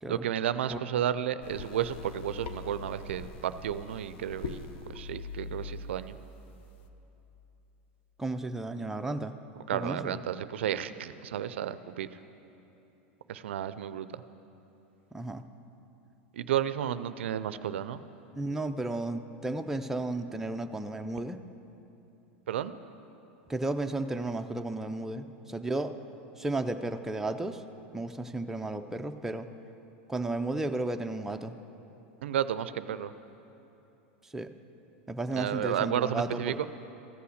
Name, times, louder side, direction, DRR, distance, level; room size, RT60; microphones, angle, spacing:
voice 1, 0.1-6.2 9.7-12.1 13.3-14.2 16.3-18.0 22.5-22.8 32.2-33.1 35.3-36.7, right 10 dB, 85° right, 14 dB, 0.4 m, -32 dB
sound 1, 1.4-6.9, left 4 dB, 70° left, 0.7 m, -43 dB
voice 2, 8.2-9.3 9.7-10.2 15.1-15.4 18.4-21.4 23.5-25.9 26.4-27.6 27.9-29.5 30.1-31.5 34.3-34.5 35.1-36.6, right 2 dB, 5° right, 6 dB, 0.4 m, -33 dB
14.5 x 5.8 x 6.4 m, 3.0 s
hypercardioid pair, 120°, 6 cm